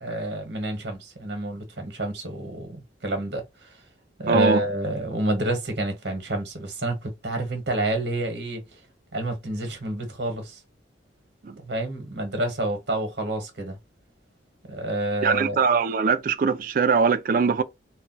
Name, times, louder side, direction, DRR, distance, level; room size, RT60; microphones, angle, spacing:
voice 1, 0.0-3.8 4.2-8.8 9.1-10.6 11.7-13.8 14.7-15.6, right 1 dB, 70° right, 1.0 m, -28 dB
voice 2, 4.3-4.6 11.4-11.6 15.2-17.6, right 5 dB, 50° right, 0.3 m, -22 dB
2.2 x 2.2 x 3.9 m
head